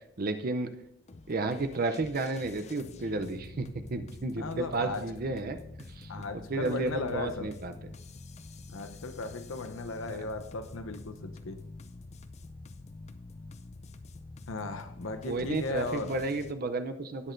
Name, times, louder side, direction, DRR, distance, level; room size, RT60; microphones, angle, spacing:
voice 1, 0.2-0.7 1.3-5.6 6.0-6.1 6.5-7.7 15.3-17.3, right 3 dB, 45° right, 0.6 m, -32 dB
sound 1, 1.1-16.5, left 3 dB, 35° left, 0.5 m, -47 dB
voice 2, 4.4-5.1 6.1-7.5 8.7-11.7 14.5-16.2, left 3 dB, 75° left, 0.8 m, -37 dB
18.0 x 6.4 x 2.6 m
head